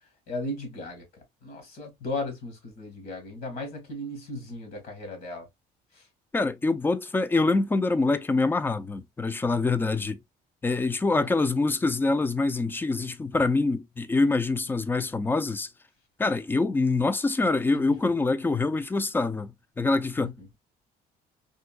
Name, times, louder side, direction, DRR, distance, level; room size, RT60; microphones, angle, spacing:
voice 1, 0.3-1.0 1.4-5.5 5.9-6.1 11.2-11.3 20.2-20.5, left 2 dB, 65° left, 1.6 m, -36 dB
voice 2, 6.3-10.2 10.6-15.7 16.2-20.6, left 3 dB, 10° left, 0.3 m, -25 dB
3.7 x 2.5 x 2.3 m
cardioid pair, 110°, 17 cm